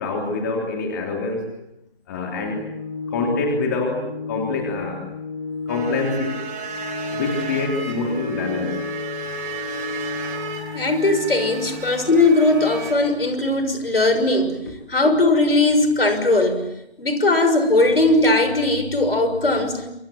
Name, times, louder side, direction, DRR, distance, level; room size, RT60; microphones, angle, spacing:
voice 1, 0.0-1.6 2.1-2.6 3.1-5.0 5.7-6.4 7.1-8.8, left 3 dB, 15° left, 1 dB, 3.2 m, -26 dB
Organ, 2.1-13.1, left 4 dB, ahead, 4.2 m, -33 dB
sound 1, 5.7-12.9, right 4 dB, 15° right, 4.3 m, -33 dB
voice 2, 10.7-14.6 14.9-16.7 17.0-19.9, left 2 dB, 65° left, 9 dB, 6.2 m, -19 dB
27.5 x 25.0 x 7.6 m, 0.81 s
figure-of-eight pair, 155°, 32 cm